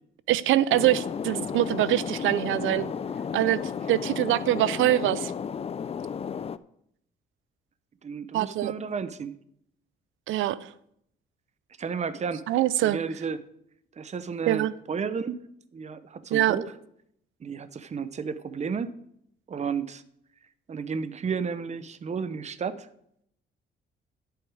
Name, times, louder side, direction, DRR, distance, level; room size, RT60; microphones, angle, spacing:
voice 1, 0.3-2.9 3.3-3.6 3.9-5.3 8.3-8.7 10.3-10.7 12.5-13.0 14.5-14.7 16.3-16.6, right 14 dB, 80° right, 18 dB, 0.5 m, -24 dB
sound 1, 0.7-6.6, left 7 dB, 30° left, 0.4 m, -33 dB
voice 2, 8.0-9.4 11.8-12.6 12.8-13.4 14.0-15.4 15.7-16.7 17.4-18.9 19.5-20.0 20.7-22.9, right 6 dB, 35° right, 14 dB, 0.7 m, -32 dB
10.5 x 8.0 x 4.7 m, 0.73 s
cardioid pair, 90°, 20 cm